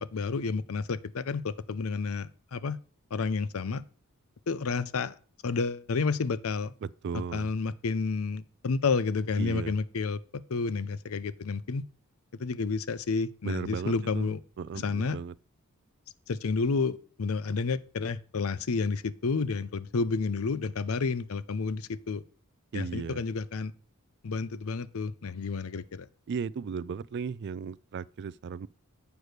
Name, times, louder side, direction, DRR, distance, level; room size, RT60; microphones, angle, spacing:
voice 1, 0.0-2.8 3.1-3.8 4.5-5.1 5.4-6.7 7.3-11.8 12.4-14.4 14.7-15.2 16.3-22.2 22.7-23.7 24.2-26.1, left 4 dB, 75° left, 0.6 m, -30 dB
voice 2, 6.8-7.5 9.4-9.7 13.4-15.3 22.7-23.2 26.3-28.7, right 6 dB, 55° right, 0.3 m, -36 dB
8.1 x 4.7 x 6.5 m
head